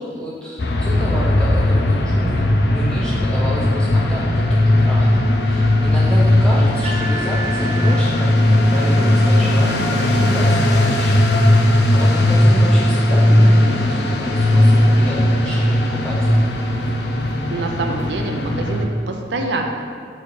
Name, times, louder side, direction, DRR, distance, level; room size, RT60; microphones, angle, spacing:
voice 1, 0.0-16.4, left 1 dB, 5° left, -6 dB, 0.6 m, -30 dB
sound 1, 0.6-18.8, left 1 dB, 70° left, 0.7 m, -17 dB
sound 2, 6.0-18.8, right 1 dB, 30° right, 1.4 m, -34 dB
voice 2, 17.5-19.7, right 2 dB, 80° right, 3 dB, 0.6 m, -25 dB
6.9 x 4.3 x 4.8 m, 2.3 s
head